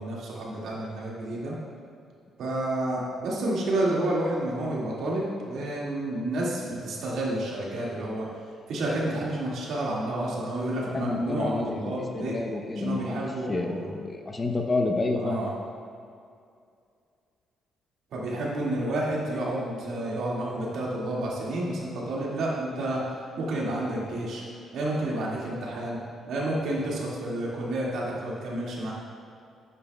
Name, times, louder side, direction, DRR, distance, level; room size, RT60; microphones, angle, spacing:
voice 1, 0.0-1.5 2.4-8.3 8.7-12.4 12.8-13.9 15.2-15.5 18.1-24.4 24.7-26.0 26.3-28.9, right 1 dB, 75° right, -5 dB, 2.1 m, -30 dB
voice 2, 10.9-15.5, left 2 dB, 30° left, 3 dB, 0.8 m, -29 dB
9.8 x 9.6 x 2.3 m, 2.3 s
cardioid pair, 90°, 0 cm